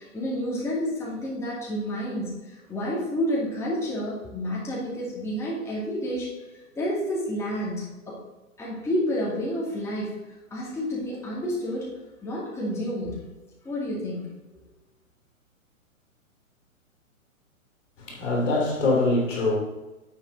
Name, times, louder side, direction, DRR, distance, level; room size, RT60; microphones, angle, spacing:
voice 1, 0.0-8.2 8.6-10.1 10.5-11.9 12.2-13.2 13.6-14.3, equal, 5° left, -6 dB, 2.4 m, -30 dB
voice 2, 18.0-19.6, left 2 dB, 60° left, 0 dB, 3.0 m, -23 dB
9.8 x 7.4 x 4.0 m, 1.1 s
figure-of-eight pair, 125°, 42 cm